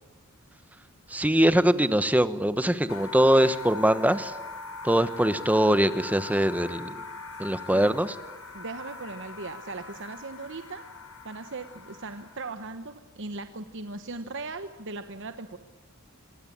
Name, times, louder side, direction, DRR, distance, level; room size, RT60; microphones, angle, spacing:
voice 1, 1.1-4.3 4.8-7.0 7.4-8.1, right 1 dB, 5° right, 12 dB, 1.1 m, -22 dB
sound 1, 2.9-12.6, left 4 dB, 70° left, 5.6 m, -41 dB
voice 2, 8.5-10.8 11.2-15.6, right 3 dB, 60° right, 9 dB, 1.1 m, -38 dB
27.0 x 22.0 x 8.7 m, 1.1 s
head